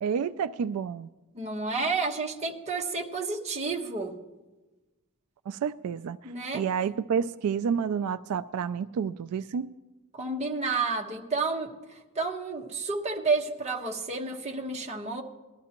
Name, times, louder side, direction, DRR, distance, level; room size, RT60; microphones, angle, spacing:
voice 1, 0.0-1.1 5.5-6.2 6.5-9.7, right 7 dB, 85° right, 0.3 m, -29 dB
voice 2, 1.3-4.1 6.2-6.6 10.1-11.7 12.1-15.2, right 3 dB, 30° right, 1.3 m, -30 dB
20.5 x 12.5 x 2.9 m
head